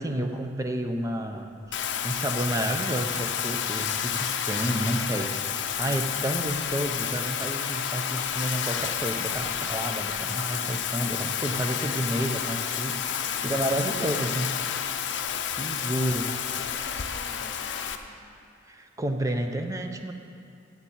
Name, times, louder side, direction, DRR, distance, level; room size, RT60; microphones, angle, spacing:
voice 1, 0.0-1.5 2.0-5.4 5.8-14.5 15.5-16.3 18.7-20.1, right 1 dB, 15° right, 5 dB, 0.6 m, -30 dB
sound 1, 1.4-12.3, equal, 85° right, 2.3 m, -54 dB
Bathtub (filling or washing), 1.7-18.0, left 8 dB, 70° left, 0.5 m, -30 dB
voice 2, 13.1-13.9 15.6-16.0 16.6-18.1, left 1 dB, 40° left, -2 dB, 1.1 m, -49 dB
8.1 x 7.1 x 7.2 m, 2.5 s
head